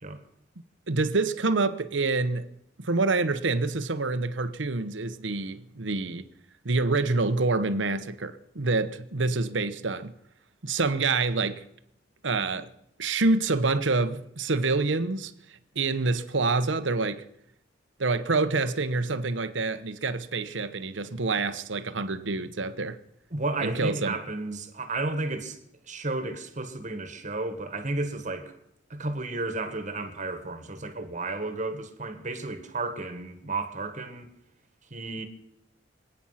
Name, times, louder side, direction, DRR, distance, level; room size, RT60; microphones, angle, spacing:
voice 1, 0.9-2.5 2.8-6.3 6.6-10.1 10.6-11.6 12.2-12.7 13.0-15.3 15.7-17.2 18.0-23.0 23.6-24.2, right 3 dB, 80° right, 1.1 m, -27 dB
voice 2, 23.3-25.6 25.8-28.6 28.9-34.3 34.9-35.2, right 2 dB, 40° right, 1.6 m, -32 dB
25.5 x 9.0 x 5.8 m
head